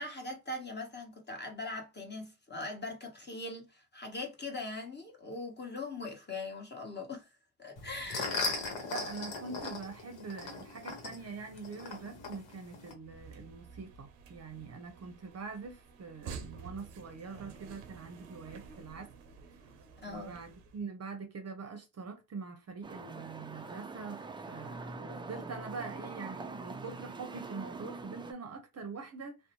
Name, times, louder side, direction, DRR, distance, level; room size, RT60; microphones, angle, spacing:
voice 1, 0.0-7.3 7.6-8.5 20.0-20.4, left 2 dB, 20° left, 1.1 m, -41 dB
sound 1, 7.8-12.9, left 3 dB, 70° left, 1.1 m, -38 dB
voice 2, 8.9-19.1 20.1-29.4, right 4 dB, 35° right, 0.7 m, -44 dB
sound 2, 13.0-20.8, right 5 dB, 90° right, 0.7 m, -50 dB
sound 3, 22.8-28.3, right 3 dB, 10° right, 0.4 m, -44 dB
2.6 x 2.1 x 2.9 m
supercardioid pair, 60°, 45 cm